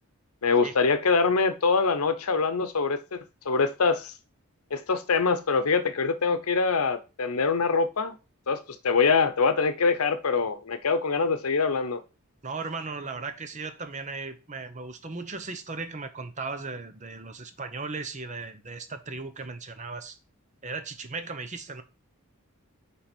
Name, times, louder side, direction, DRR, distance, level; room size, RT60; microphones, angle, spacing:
voice 1, 0.4-4.1 4.7-8.1 8.5-12.0, left 4 dB, 80° left, 0.8 m, -24 dB
voice 2, 12.4-20.2 20.6-21.8, right 4 dB, 35° right, 0.9 m, -37 dB
9.5 x 3.6 x 4.5 m
head